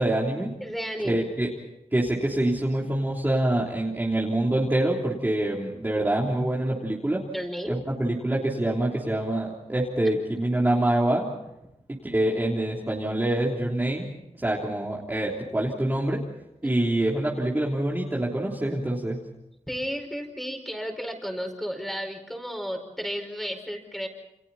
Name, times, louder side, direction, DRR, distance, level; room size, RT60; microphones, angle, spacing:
voice 1, 0.0-0.5 1.0-1.5 1.9-7.2 7.7-11.2 12.0-14.1 14.4-16.2 16.6-19.2, right 1 dB, 15° right, -4 dB, 3.3 m, -25 dB
voice 2, 0.6-1.2 7.3-7.8 16.6-16.7 19.7-24.1, equal, ahead, 3 dB, 5.2 m, -33 dB
29.5 x 29.0 x 4.3 m, 0.88 s
wide cardioid pair, 135°, 12 cm